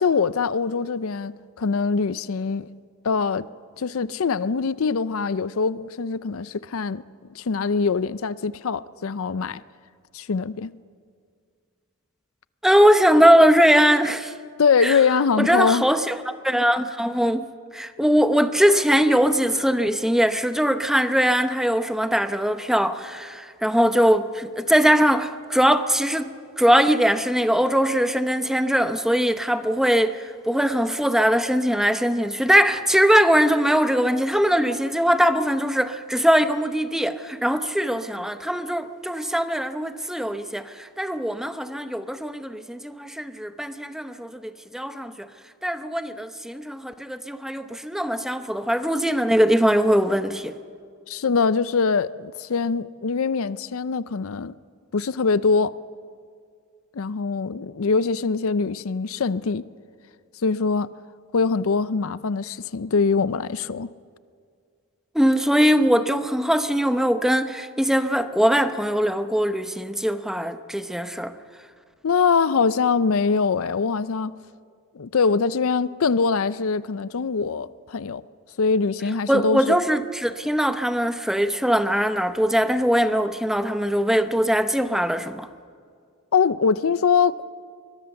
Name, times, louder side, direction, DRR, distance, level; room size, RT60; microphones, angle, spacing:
voice 1, 0.0-1.3 1.6-2.7 3.0-3.5 3.8-7.0 7.4-9.6 10.1-10.8 14.6-15.8 51.1-54.5 54.9-55.7 56.9-59.6 60.4-60.9 61.3-63.9 72.0-74.3 74.9-78.2 78.6-79.7 86.3-87.4, left 5 dB, 70° left, 0.5 m, -23 dB
voice 2, 12.6-14.3 14.8-15.0 15.4-16.2 16.4-17.5 17.7-45.3 45.6-50.5 65.1-71.3 79.3-85.5, equal, ahead, 0.8 m, -21 dB
23.5 x 21.5 x 7.1 m
head